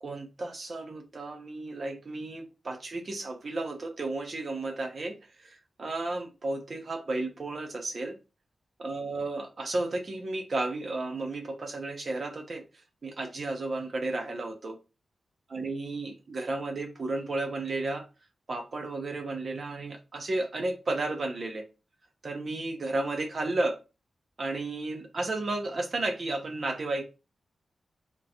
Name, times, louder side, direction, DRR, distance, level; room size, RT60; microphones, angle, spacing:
voice 1, 0.0-8.2 8.8-12.6 13.0-14.8 15.5-18.1 18.5-21.7 22.2-23.8 24.4-27.0, right 2 dB, 50° right, 0.9 m, -33 dB
3.7 x 3.0 x 2.9 m
cardioid pair, 80°, 0 cm